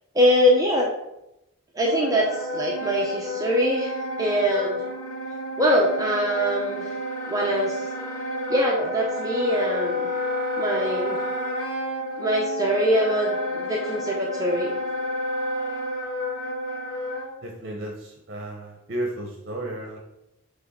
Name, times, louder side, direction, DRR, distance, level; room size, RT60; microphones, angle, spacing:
voice 1, 0.1-0.9 1.7-4.8 5.6-6.9 7.3-7.8 8.5-10.1 10.6-11.2 12.2-14.7, equal, 15° right, -2 dB, 0.6 m, -23 dB
Wind instrument woodwind instrument, 1.8-17.3, left 1 dB, 90° left, 1.8 m, -30 dB
voice 2, 17.4-20.0, right 1 dB, 45° right, 1 dB, 0.8 m, -33 dB
6.1 x 3.4 x 5.6 m, 0.88 s
head